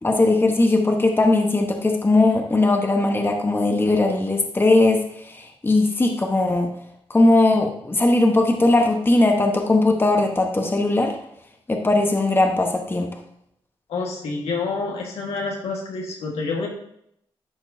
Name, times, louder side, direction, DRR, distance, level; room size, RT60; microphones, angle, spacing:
voice 1, 0.0-6.7 7.1-11.1 11.7-13.1, left 2 dB, 20° left, 2 dB, 1.1 m, -19 dB
voice 2, 13.9-16.7, left 4 dB, 85° left, -1 dB, 1.7 m, -28 dB
10.5 x 4.4 x 2.7 m, 0.73 s
cardioid pair, 70°, 10 cm